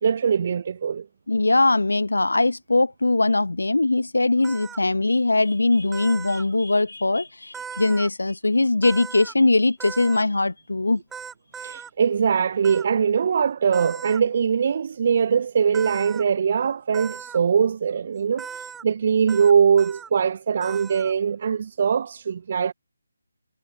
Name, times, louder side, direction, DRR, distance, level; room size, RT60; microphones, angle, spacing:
voice 1, 0.0-1.1 11.6-22.7, right 7 dB, 40° right, 0.3 m, -22 dB
voice 2, 1.3-11.0, left 2 dB, 70° left, 0.9 m, -21 dB
sound 1, 4.4-4.8 5.9-6.4 7.5-8.1 8.8-9.3 9.8-10.2 11.1-11.9 12.6-12.8 13.7-14.2 15.7-16.2 16.9-17.4 18.4-18.8 19.3-19.5 19.8-20.1 20.6-21.1, right 7 dB, 5° right, 1.7 m, -38 dB
figure-of-eight pair, 150°, 0 cm